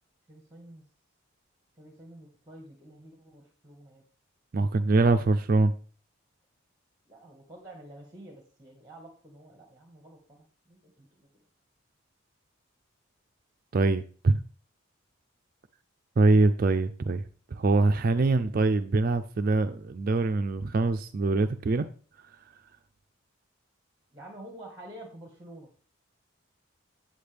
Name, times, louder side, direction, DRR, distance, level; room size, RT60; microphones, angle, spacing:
voice 1, 0.3-0.8 1.8-4.0 7.1-11.1 24.1-25.7, right 1 dB, 15° right, 1 dB, 1.5 m, -49 dB
voice 2, 4.5-5.7 13.7-14.4 16.2-17.2 17.5-21.9, right 3 dB, 45° right, 9 dB, 0.4 m, -23 dB
8.4 x 7.8 x 3.4 m, 0.39 s
head